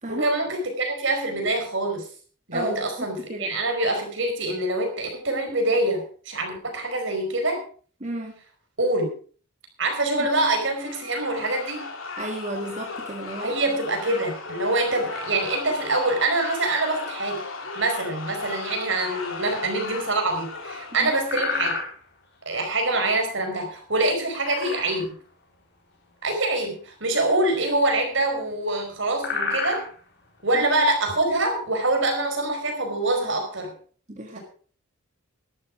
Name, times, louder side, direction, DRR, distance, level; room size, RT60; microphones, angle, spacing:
voice 1, 0.1-2.1 2.5-7.6 8.8-9.1 9.8-11.9 13.4-17.4 17.7-21.8 22.4-25.1 26.2-29.8 30.4-33.7, right 2 dB, 65° right, 4 dB, 4.9 m, -25 dB
voice 2, 2.5-3.5 8.0-8.4 12.2-13.6 14.1-14.2 21.0-21.1 30.5-30.6 34.1-34.4, right 1 dB, 35° right, 1 dB, 2.0 m, -33 dB
sound 1, 10.7-21.6, left 3 dB, 80° left, 3.3 m, -36 dB
sound 2, 19.6-20.2 20.6-20.8 21.2-22.3 24.1-25.2 25.5-25.6 26.0-26.2 27.2-28.3 28.6-28.7 28.9-31.8, left 4 dB, 60° left, 4.3 m, -31 dB
13.0 x 12.0 x 5.0 m, 0.43 s
head